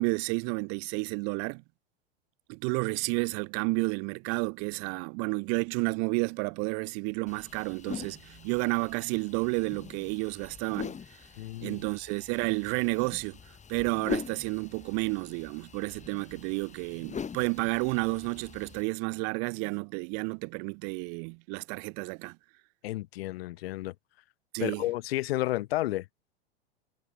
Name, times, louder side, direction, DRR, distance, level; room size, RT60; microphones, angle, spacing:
voice 1, 0.0-1.6 2.5-11.0 11.6-22.4 24.5-24.8, right 40 dB or more, 50° right, 1.8 m, -31 dB
sound 1, 7.3-18.8, left 6 dB, 20° left, 5.9 m, -42 dB
voice 2, 11.4-11.8 22.8-23.9 24.6-26.1, left 17 dB, 65° left, 2.7 m, -31 dB
hypercardioid pair, 100°, 32 cm